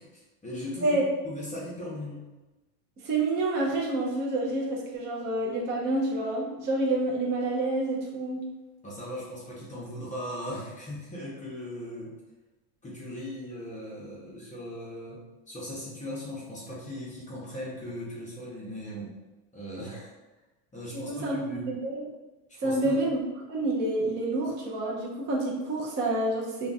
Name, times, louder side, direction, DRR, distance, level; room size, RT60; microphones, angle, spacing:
voice 1, 0.0-2.3 8.8-12.1 12.8-15.2 15.5-19.1 19.5-20.1 20.7-21.7 22.6-23.0, left 1 dB, 15° left, -6 dB, 0.7 m, -38 dB
voice 2, 3.0-8.4 20.9-22.0 22.6-23.2 23.5-26.7, right 2 dB, 25° right, -3 dB, 0.4 m, -28 dB
2.3 x 2.3 x 3.9 m, 1.1 s
supercardioid pair, 125°, 48 cm